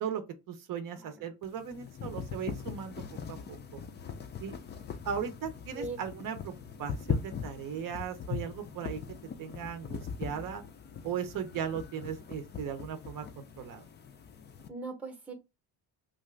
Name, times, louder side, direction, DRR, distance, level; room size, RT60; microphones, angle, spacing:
voice 1, 0.0-3.0 3.3-3.8 4.4-4.5 5.0-6.5 6.8-9.0 9.4-10.6 11.0-13.9, right 8 dB, 55° right, 0.6 m, -37 dB
voice 2, 0.9-1.3 5.7-6.0 14.7-15.3, right 3 dB, 5° right, 0.7 m, -40 dB
sound 1, 1.4-14.7, left 6 dB, 30° left, 0.3 m, -40 dB
2.7 x 2.3 x 3.2 m
cardioid pair, 120°, 40 cm